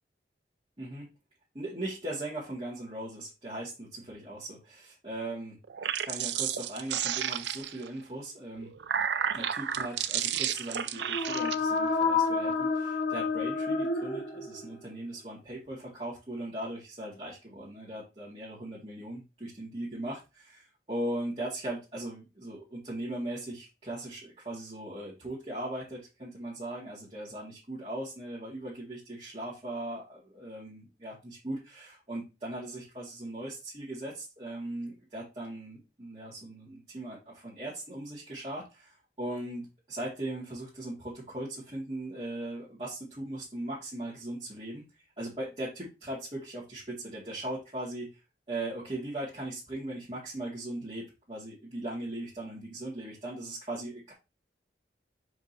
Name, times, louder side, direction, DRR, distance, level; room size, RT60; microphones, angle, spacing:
voice 1, 1.5-5.5 6.0-8.7 9.3-44.8 45.2-48.1 48.5-54.1, right 1 dB, 35° right, -8 dB, 2.1 m, -39 dB
sound 1, 5.6-7.9 8.6-11.6, right 9 dB, 75° right, 0.5 m, -32 dB
sound 2, 11.0-14.8, left 4 dB, 70° left, 1.7 m, -29 dB
7.0 x 5.0 x 2.8 m, 0.27 s
head